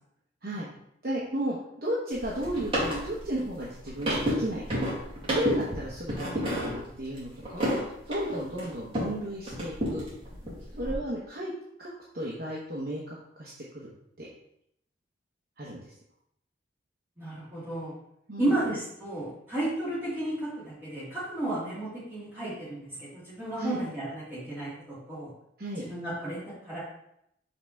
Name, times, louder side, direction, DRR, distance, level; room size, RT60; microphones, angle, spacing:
voice 1, 1.0-10.0 10.8-11.5 11.8-11.9 12.1-13.9 14.2-14.3 15.6-15.9 18.3-18.5 23.6-23.8 25.6-25.9, right 1 dB, 55° right, -5 dB, 1.0 m, -34 dB
sound 1, 2.1-9.2 9.5-10.9, equal, 30° right, 2.3 m, -31 dB
voice 2, 17.2-18.0 18.4-25.3 25.8-26.8, right 1 dB, 10° right, -10 dB, 2.2 m, -33 dB
5.6 x 3.5 x 5.6 m, 0.76 s
head